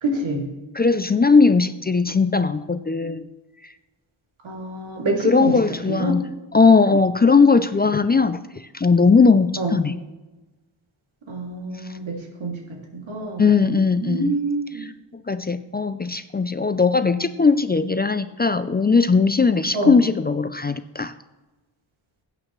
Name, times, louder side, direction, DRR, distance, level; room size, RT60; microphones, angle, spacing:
voice 1, 0.0-0.4 4.4-5.6 5.9-6.2 9.6-9.8 11.3-14.9 19.7-20.0, right 2 dB, 85° right, 0 dB, 2.7 m, -27 dB
voice 2, 0.8-3.3 3.6-3.7 5.2-6.2 6.5-10.0 13.4-14.3 15.3-21.1, left 4 dB, 20° left, 11 dB, 0.4 m, -18 dB
17.5 x 8.8 x 3.2 m, 1.1 s
wide cardioid pair, 95°, 46 cm